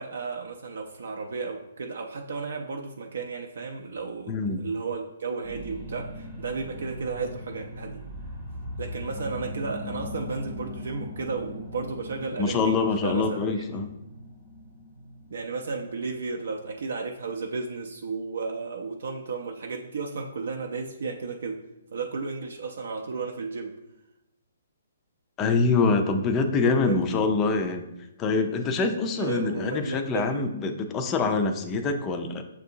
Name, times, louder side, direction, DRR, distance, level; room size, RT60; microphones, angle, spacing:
voice 1, 0.0-8.0 8.8-13.6 15.3-21.6 21.9-23.7 26.8-27.2 29.2-30.4, right 4 dB, 70° right, 2 dB, 0.4 m, -33 dB
voice 2, 4.3-4.6 12.4-13.9 25.4-27.9 28.2-32.4, left 4 dB, 15° left, 6 dB, 0.3 m, -25 dB
sound 1, 5.4-18.1 18.6-18.7, left 1 dB, 15° right, 0.7 m, -40 dB
6.9 x 2.6 x 2.7 m, 0.90 s
hypercardioid pair, 170°, 0 cm